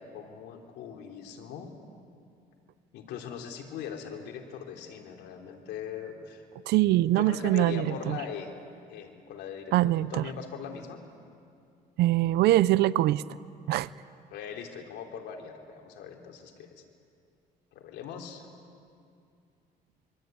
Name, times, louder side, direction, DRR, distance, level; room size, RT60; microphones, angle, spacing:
voice 1, 0.0-1.8 2.9-6.4 7.2-8.5 8.9-11.0 14.3-16.8 17.7-18.5, left 8 dB, 80° left, 2 dB, 3.5 m, -40 dB
voice 2, 6.7-8.2 9.7-10.2 12.0-13.2 13.7-13.9, right 15 dB, 80° right, 18 dB, 0.6 m, -23 dB
24.5 x 24.5 x 9.3 m, 2.4 s
cardioid pair, 110°, 17 cm